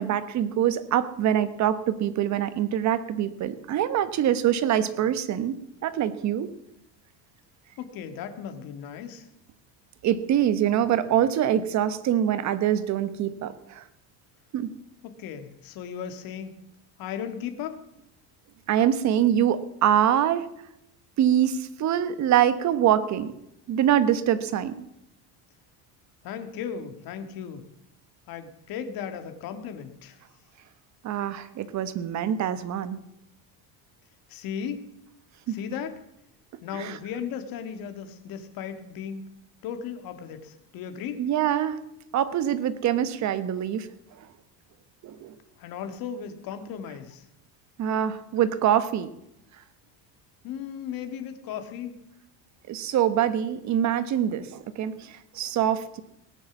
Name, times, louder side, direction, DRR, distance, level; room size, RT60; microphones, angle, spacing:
voice 1, 0.0-6.5 10.0-13.8 14.5-14.7 18.7-20.4 21.2-23.3 23.7-24.9 31.0-33.0 35.5-35.6 36.7-37.0 41.2-41.8 42.1-43.9 44.2-44.3 45.0-45.3 47.8-49.1 52.7-56.0, right 10 dB, 40° right, 13 dB, 1.2 m, -24 dB
voice 2, 7.8-9.3 15.0-16.5 17.0-17.9 26.2-27.7 28.3-30.2 34.3-34.9 35.5-36.0 36.6-39.2 39.6-41.3 45.6-47.2 50.4-52.0, left 8 dB, 55° left, 7 dB, 2.0 m, -36 dB
18.0 x 9.7 x 7.2 m, 0.80 s
cardioid pair, 150°, 42 cm